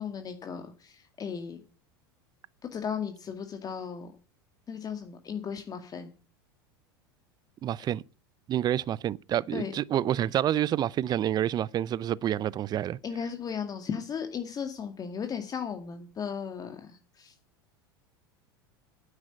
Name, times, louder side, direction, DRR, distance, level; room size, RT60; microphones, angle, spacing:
voice 1, 0.0-1.6 2.6-4.1 4.7-6.1 9.5-9.7 13.0-17.3, left 7 dB, 30° left, 2.0 m, -36 dB
voice 2, 7.6-8.0 8.5-13.0, right 11 dB, 35° right, 0.5 m, -28 dB
9.6 x 8.9 x 9.0 m
hypercardioid pair, 90°, 12 cm